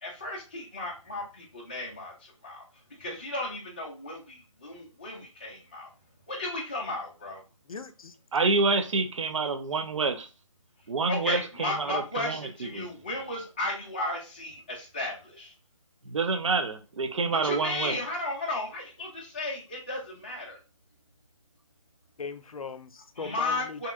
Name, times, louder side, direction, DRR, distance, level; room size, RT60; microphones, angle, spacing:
voice 1, 0.0-2.6 3.0-5.9 6.3-7.4 11.1-15.5 17.3-20.6 23.2-23.9, left 2 dB, 15° left, -3 dB, 0.3 m, -34 dB
voice 2, 7.7-8.1 22.2-23.9, left 5 dB, 80° left, 10 dB, 0.5 m, -39 dB
voice 3, 8.3-10.3 10.9-12.9 16.1-18.0, right 4 dB, 60° right, 7 dB, 0.5 m, -28 dB
2.9 x 2.7 x 2.3 m, 0.32 s
figure-of-eight pair, 160°, 18 cm